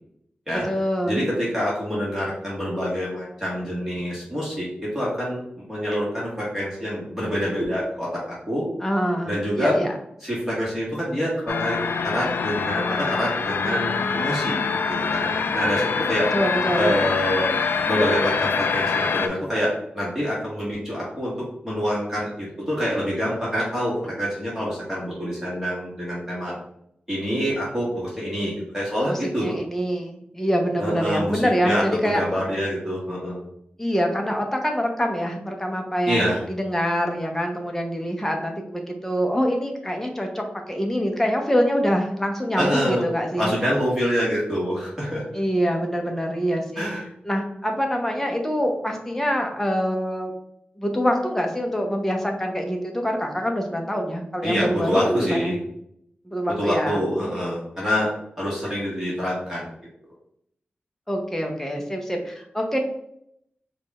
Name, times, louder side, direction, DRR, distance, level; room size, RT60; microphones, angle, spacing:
voice 1, 0.5-1.3 8.8-9.9 16.3-17.0 29.1-32.2 33.8-43.5 45.3-46.9 47.2-50.3 50.8-55.5 56.2-57.1 61.1-62.8, equal, 10° left, 2 dB, 0.9 m, -25 dB
voice 2, 1.1-8.6 9.2-9.7 10.2-11.8 12.0-16.3 16.8-17.5 17.9-21.3 21.6-26.5 27.1-29.5 30.8-33.4 36.1-36.4 42.6-43.0 43.4-45.2 46.8-47.0 54.4-55.6 56.5-58.1 58.4-59.7, equal, 10° right, -6 dB, 1.5 m, -26 dB
sound 1, 11.5-19.3, left 5 dB, 80° left, 0.3 m, -25 dB
4.8 x 2.4 x 4.1 m, 0.73 s
wide cardioid pair, 90°, 3 cm